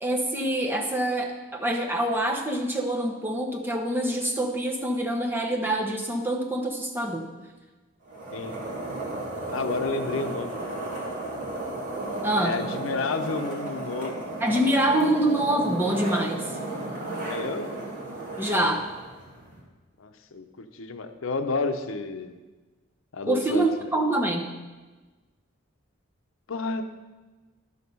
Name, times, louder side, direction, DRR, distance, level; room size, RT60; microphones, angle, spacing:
voice 1, 0.0-7.3 12.2-12.6 14.4-16.5 18.4-18.9 23.2-24.5, right 1 dB, 10° right, 1 dB, 1.0 m, -25 dB
sound 1, 8.0-19.6, right 2 dB, 40° right, 2.5 m, -34 dB
voice 2, 9.5-10.7 12.4-14.3 17.2-17.7 20.0-22.4 23.1-24.0 26.5-26.8, left 3 dB, 80° left, 8 dB, 0.7 m, -31 dB
11.0 x 6.5 x 5.4 m, 1.2 s
head